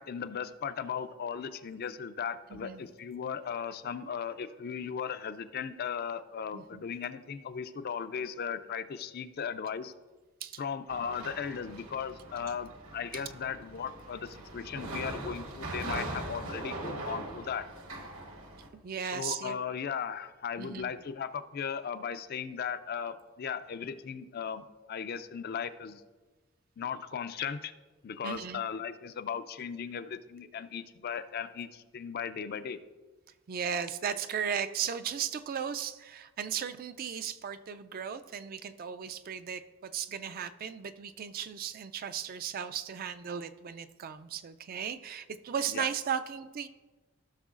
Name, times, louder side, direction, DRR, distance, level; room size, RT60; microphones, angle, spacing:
voice 1, 0.0-9.9 10.6-17.7 19.1-26.0 26.8-27.7 28.0-32.8 45.7-45.9, left 7 dB, 45° left, 12 dB, 0.4 m, -37 dB
voice 2, 2.5-2.8 6.5-6.8 10.4-10.6 18.7-19.6 20.6-20.9 28.2-28.6 33.5-46.7, right 8 dB, 40° right, 11 dB, 0.3 m, -36 dB
sound 1, 10.9-18.7, right 2 dB, 70° right, 1.2 m, -41 dB
15.0 x 6.2 x 2.4 m, 1.3 s
head